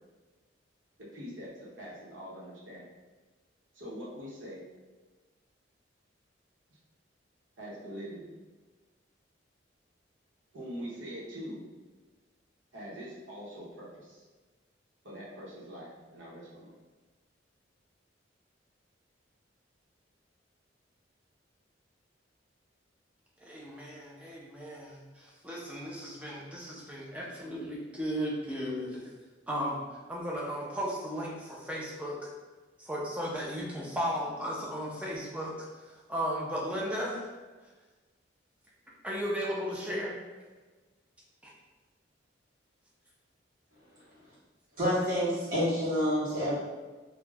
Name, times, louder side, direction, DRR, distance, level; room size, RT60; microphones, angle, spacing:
voice 1, 1.0-2.9 3.7-4.6 7.6-8.3 10.5-11.6 12.7-14.2 15.0-16.8, equal, 85° right, -5 dB, 0.8 m, -43 dB
voice 2, 23.4-29.0 29.5-29.8 30.1-32.3 32.8-35.7 36.1-37.3 39.0-40.2 41.4-41.5, equal, 5° right, -4 dB, 0.4 m, -35 dB
voice 3, 44.8-46.5, equal, 50° right, -10 dB, 0.9 m, -28 dB
2.3 x 2.1 x 3.2 m, 1.3 s
head